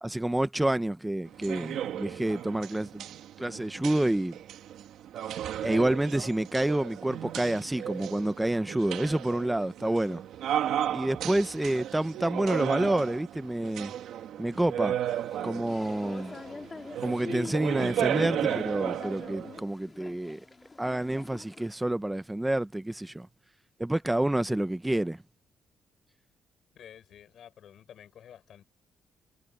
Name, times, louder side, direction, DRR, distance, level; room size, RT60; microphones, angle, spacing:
voice 1, 0.0-3.1 3.4-4.4 5.6-10.2 10.9-13.9 14.4-15.0 15.4-16.3 17.0-20.4 20.8-23.3 23.8-25.2, right 1 dB, 10° right, 0.9 m, -28 dB
sound 1, 1.3-19.6, right 11 dB, 80° right, 1.9 m, -34 dB
sound 2, 15.1-21.7, left 3 dB, 25° left, 2.1 m, -44 dB
voice 2, 26.8-28.6, left 9 dB, 65° left, 7.5 m, -51 dB
cardioid pair, 90°, 0 cm